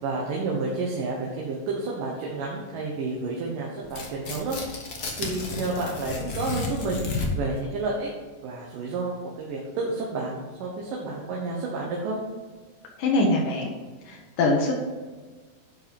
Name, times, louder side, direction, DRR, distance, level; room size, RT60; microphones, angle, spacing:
voice 1, 0.0-4.6 5.2-7.0 7.3-8.1 8.4-12.2, right 3 dB, 75° right, -3 dB, 2.8 m, -30 dB
Tearing, 3.8-7.6, left 3 dB, 60° left, 1.0 m, -32 dB
voice 2, 13.0-13.7 14.0-14.7, left 2 dB, 80° left, -1 dB, 2.8 m, -23 dB
11.0 x 5.1 x 5.3 m, 1.4 s
omnidirectional pair, 3.9 m